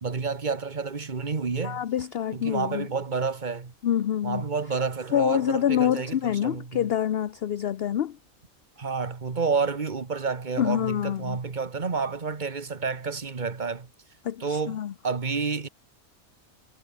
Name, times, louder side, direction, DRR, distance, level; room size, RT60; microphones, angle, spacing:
voice 1, 0.0-1.8 2.3-3.7 4.2-6.9 8.8-13.9 14.4-15.7, right 5 dB, 35° right, 1.6 m, -30 dB
voice 2, 1.6-2.9 3.8-4.4 5.1-8.2 10.6-11.4 14.2-14.9, left 10 dB, 55° left, 0.8 m, -26 dB
omnidirectional pair, 1.4 m